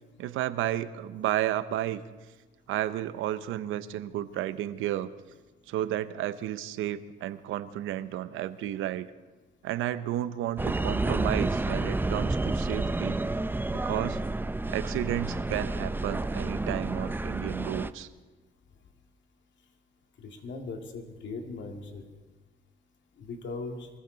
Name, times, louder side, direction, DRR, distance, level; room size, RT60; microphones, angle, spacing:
voice 1, 0.2-2.0 2.7-5.1 5.7-9.1 9.6-13.2 13.7-14.2 14.7-18.1, right 12 dB, 90° right, 14 dB, 0.8 m, -32 dB
sound 1, 10.6-17.9, right 2 dB, 10° right, 0.5 m, -30 dB
voice 2, 20.2-22.0 23.2-23.9, left 3 dB, 65° left, 4 dB, 2.3 m, -39 dB
24.0 x 15.0 x 4.0 m, 1.2 s
cardioid pair, 90°, 20 cm